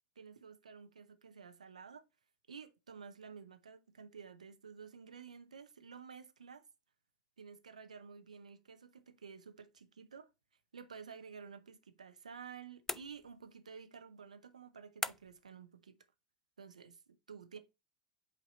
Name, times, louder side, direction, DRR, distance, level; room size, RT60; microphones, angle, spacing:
voice 1, 0.2-2.1 2.5-6.7 7.4-10.3 10.7-16.0 16.6-17.6, right 6 dB, 80° right, 0.7 m, -52 dB
sound 1, 12.9-13.6 15.0-15.5, left 2 dB, 10° left, 0.3 m, -41 dB
8.0 x 2.8 x 4.3 m
figure-of-eight pair, 75°, 4 cm